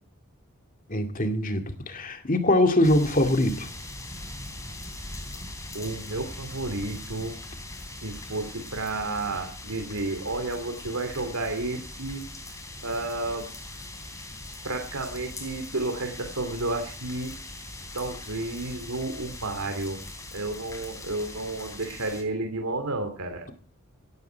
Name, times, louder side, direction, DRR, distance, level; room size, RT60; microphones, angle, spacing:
voice 1, 0.9-3.7, left 1 dB, 40° left, 2.2 m, -23 dB
sound 1, 2.8-22.2, left 2 dB, 15° left, 3.4 m, -41 dB
voice 2, 5.7-7.3 7.9-12.2 12.8-13.5 14.6-17.3 17.9-20.0 20.3-23.5, right 2 dB, 90° right, 2.8 m, -31 dB
17.0 x 14.5 x 4.5 m
head